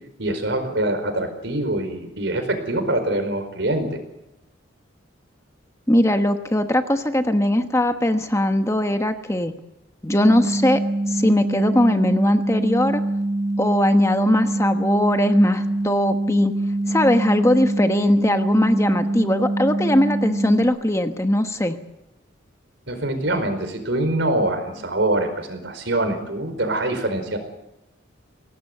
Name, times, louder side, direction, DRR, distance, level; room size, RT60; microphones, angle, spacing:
voice 1, 0.2-4.0 22.9-27.4, right 1 dB, 70° right, 8 dB, 4.8 m, -24 dB
voice 2, 5.9-9.5 10.0-10.8 11.1-13.0 13.6-16.5 16.9-21.8, left 1 dB, 15° left, 7 dB, 1.2 m, -20 dB
sound 1, 10.1-20.6, right 1 dB, ahead, 4.3 m, -24 dB
23.0 x 18.0 x 8.0 m, 0.91 s
head